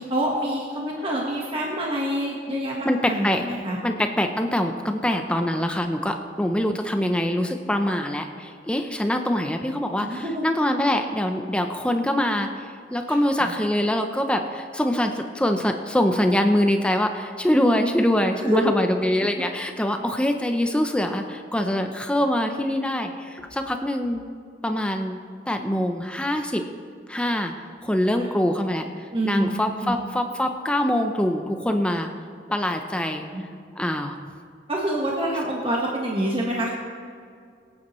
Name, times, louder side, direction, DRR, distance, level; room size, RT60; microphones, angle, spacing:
voice 1, 0.0-3.8 10.0-10.4 18.4-18.9 19.2-19.3 28.2-28.3 29.1-29.5 29.8-30.0 33.3-33.4 34.7-36.7, right 1 dB, 30° right, -3 dB, 1.4 m, -26 dB
voice 2, 2.8-3.4 3.8-24.2 24.6-25.2 25.5-26.6 27.1-27.5 27.8-32.1 32.5-33.2 33.8-34.2, left 1 dB, 5° left, 5 dB, 0.6 m, -24 dB
22.5 x 8.8 x 3.1 m, 2.3 s
head